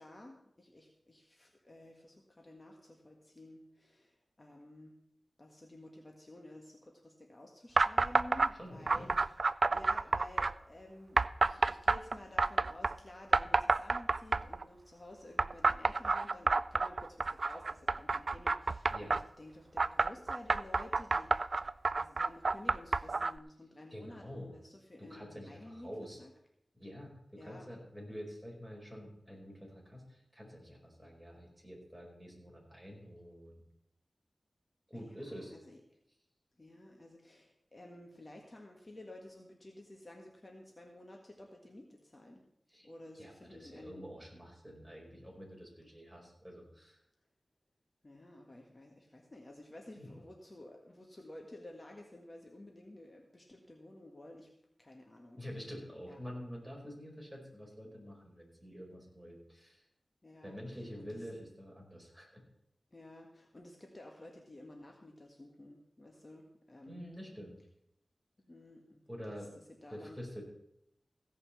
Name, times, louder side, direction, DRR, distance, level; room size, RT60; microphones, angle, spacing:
voice 1, 0.0-5.0 5.4-9.4 9.7-21.6 21.9-25.9 26.2-26.3 27.4-27.7 34.9-36.0 36.6-42.4 42.8-44.1 48.0-54.5 54.8-55.7 56.1-56.2 60.2-61.3 62.9-67.1 68.4-70.2, left 1 dB, 35° left, 1 dB, 1.7 m, -53 dB
sound 1, 7.8-8.5 8.9-10.5 11.2-12.9 13.3-14.6 15.4-19.2 19.8-23.4, right 3 dB, 60° right, 0.3 m, -29 dB
voice 2, 8.6-9.1 18.9-19.1 23.9-24.5 25.0-26.2 26.7-27.1 27.4-33.6 34.9-35.5 42.7-42.9 43.1-47.0 49.9-50.1 55.4-59.8 60.4-62.4 66.9-67.6 69.1-69.5 69.9-70.4, equal, 5° right, -2 dB, 5.1 m, -47 dB
16.0 x 5.6 x 7.0 m, 0.76 s
cardioid pair, 50°, 0 cm